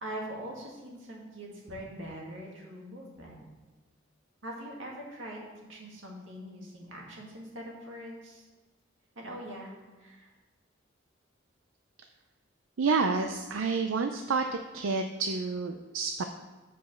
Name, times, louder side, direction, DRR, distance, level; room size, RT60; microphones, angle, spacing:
voice 1, 0.0-3.4 4.4-8.4 9.2-9.7 10.0-10.3, right 1 dB, 70° right, -2 dB, 2.1 m, -42 dB
voice 2, 12.8-14.5 14.7-16.2, right 4 dB, 85° right, 6 dB, 0.5 m, -29 dB
7.1 x 5.1 x 6.6 m, 1.3 s
head